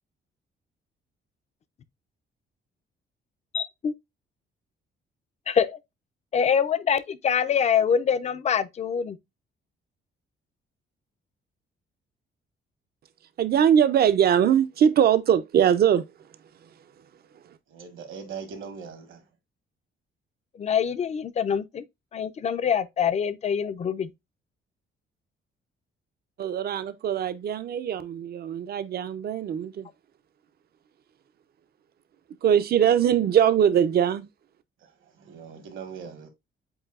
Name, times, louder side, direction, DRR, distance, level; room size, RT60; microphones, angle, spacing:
voice 1, 3.5-3.9 5.5-5.8 6.3-9.2 20.5-21.8 22.1-24.1, left 7 dB, 35° left, 0.4 m, -25 dB
voice 2, 13.4-16.1 26.4-29.9 32.4-34.3, right 9 dB, 50° right, 0.5 m, -21 dB
voice 3, 17.7-19.2 35.2-36.3, right 6 dB, 70° right, 1.4 m, -40 dB
7.8 x 2.6 x 2.3 m
cardioid pair, 155°, 21 cm